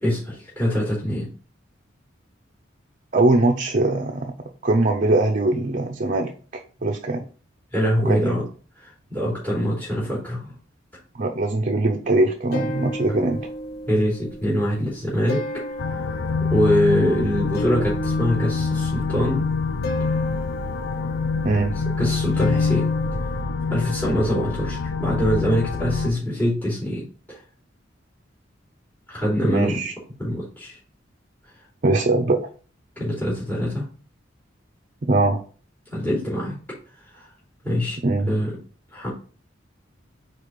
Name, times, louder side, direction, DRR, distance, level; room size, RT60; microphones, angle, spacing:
voice 1, 0.0-1.3 7.7-8.4 8.8-10.5 13.9-15.4 16.5-19.5 22.0-22.9 23.7-27.4 29.1-29.8 30.2-30.8 33.0-33.9 35.9-36.6 37.1-37.3 37.6-38.0 38.3-38.5 38.9-39.1, equal, 10° left, -6 dB, 3.1 m, -24 dB
voice 2, 3.1-4.3 4.6-7.2 8.0-8.4 11.1-13.4 21.4-21.8 29.4-29.9 31.8-32.5 35.0-35.4 38.0-38.3, right 2 dB, 45° right, 3 dB, 0.6 m, -21 dB
sound 1, 12.5-23.4, equal, 55° left, 0.9 m, -34 dB
sound 2, 15.8-26.1, left 4 dB, 85° left, 0.5 m, -25 dB
4.8 x 4.5 x 5.1 m, 0.39 s
head